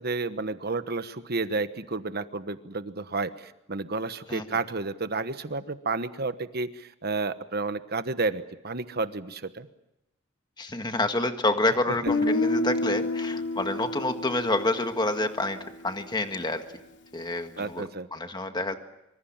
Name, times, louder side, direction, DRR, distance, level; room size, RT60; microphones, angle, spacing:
voice 1, 0.0-9.7 17.6-18.1, right 3 dB, 50° right, 11 dB, 1.2 m, -31 dB
voice 2, 10.6-15.6 15.8-16.6 17.1-17.8 18.1-18.8, left 2 dB, 20° left, 7 dB, 1.6 m, -28 dB
Guitar, 12.1-16.0, left 2 dB, 60° left, 2.6 m, -29 dB
26.0 x 25.0 x 7.4 m, 0.88 s
head